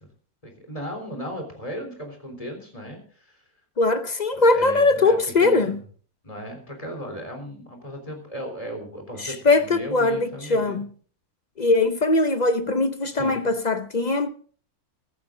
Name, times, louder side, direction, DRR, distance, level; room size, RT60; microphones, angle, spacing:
voice 1, 0.4-3.4 4.3-5.8 6.2-10.8 13.1-13.5, equal, 20° left, 3.8 m, -36 dB
voice 2, 3.8-5.8 9.2-10.9 11.6-14.3, left 3 dB, 40° left, 0.6 m, -21 dB
14.5 x 14.5 x 3.8 m
omnidirectional pair, 1.6 m